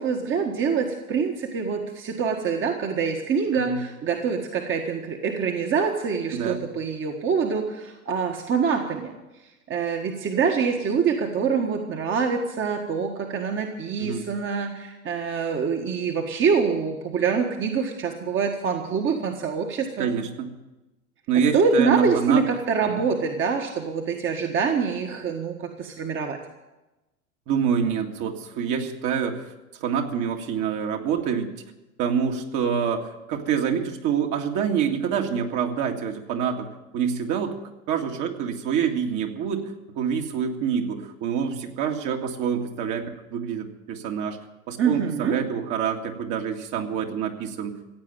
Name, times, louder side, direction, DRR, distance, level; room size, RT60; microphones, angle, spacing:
voice 1, 0.0-9.1 9.7-20.1 21.5-26.4 44.8-45.4, right 5 dB, 30° right, 3 dB, 1.6 m, -25 dB
voice 2, 20.0-20.5 21.3-22.4 22.9-23.0 27.5-29.5 29.8-31.5 32.0-36.7 36.9-37.6 37.9-44.4 44.7-47.7, right 7 dB, 45° right, 3 dB, 2.2 m, -26 dB
16.0 x 8.8 x 9.0 m, 1.0 s
hypercardioid pair, 100°, 43 cm